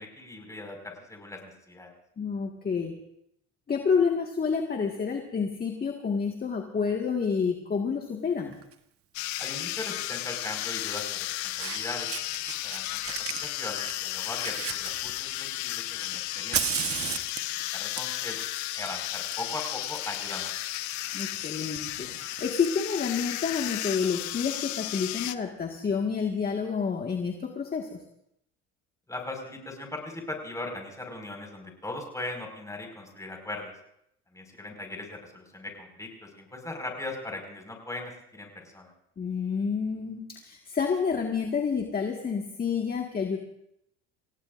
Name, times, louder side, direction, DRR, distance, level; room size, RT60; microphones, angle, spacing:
voice 1, 0.0-1.9 9.4-12.1 12.6-16.6 17.5-18.4 18.8-20.5 29.1-33.7 34.3-38.9, left 2 dB, 10° left, 2 dB, 5.3 m, -39 dB
voice 2, 2.2-2.9 3.7-8.6 21.1-28.0 39.2-43.4, left 6 dB, 30° left, 2 dB, 1.8 m, -29 dB
Fire, 8.5-8.7 10.2-10.3 11.2-11.3 11.5-12.8 13.0-15.5 16.0-23.7, right 9 dB, 45° right, 1.3 m, -37 dB
sound 1, 9.1-25.3, left 16 dB, 65° left, 0.8 m, -34 dB
28.0 x 16.5 x 2.6 m, 0.77 s
supercardioid pair, 90°, 31 cm